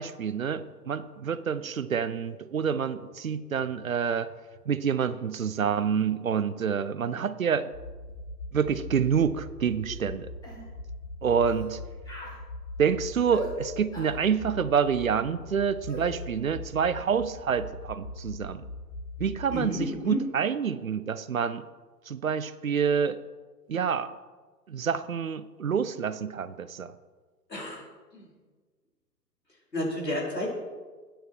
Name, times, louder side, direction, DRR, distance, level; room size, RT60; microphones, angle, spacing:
voice 1, 0.0-4.3 4.7-7.7 8.5-10.3 11.2-11.8 12.8-18.6 19.2-21.6 22.1-23.2 23.7-24.1 24.7-26.9, right 7 dB, 55° right, 14 dB, 0.7 m, -27 dB
sound 1, 7.7-19.7, left 2 dB, 50° left, 2.0 m, -41 dB
sound 2, 9.9-10.0 10.4-10.6 11.4-11.7 12.0-12.4 13.3-13.5 13.9-14.2 15.9-16.1, equal, 10° left, 2.2 m, -40 dB
voice 2, 19.5-20.2 27.5-27.8 28.1-28.3 29.7-30.5, left 1 dB, 80° left, -3 dB, 4.7 m, -31 dB
13.5 x 9.3 x 4.7 m, 1.4 s
figure-of-eight pair, 130°, 49 cm